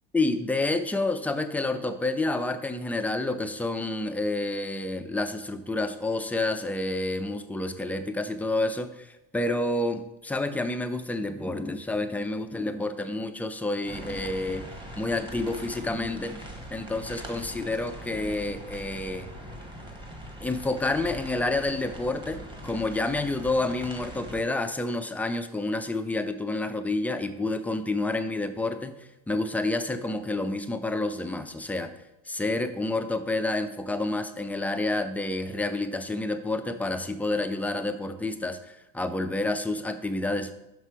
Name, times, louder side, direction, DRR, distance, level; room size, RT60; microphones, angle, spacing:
voice 1, 0.1-14.7 15.0-16.4 16.7-19.3 20.4-31.9 32.3-40.5, left 2 dB, 5° left, 8 dB, 0.4 m, -29 dB
sound 1, 13.9-24.4, equal, 15° right, 1.3 m, -42 dB
5.9 x 5.6 x 4.7 m, 0.93 s
supercardioid pair, 115°, 32 cm